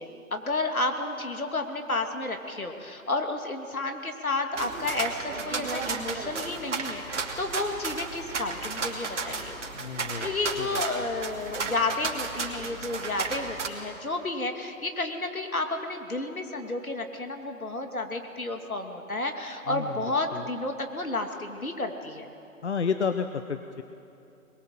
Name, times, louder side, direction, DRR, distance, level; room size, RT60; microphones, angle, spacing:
voice 1, 0.0-9.5 10.2-22.3, left 2 dB, 75° left, 5 dB, 2.6 m, -31 dB
sound 1, 4.5-13.7, right 4 dB, 55° right, 2.7 m, -33 dB
voice 2, 9.7-10.8 19.7-20.0 20.3-20.5 22.6-23.8, left 6 dB, 50° left, 9 dB, 0.9 m, -31 dB
23.0 x 21.5 x 7.7 m, 2.8 s
figure-of-eight pair, 135°, 43 cm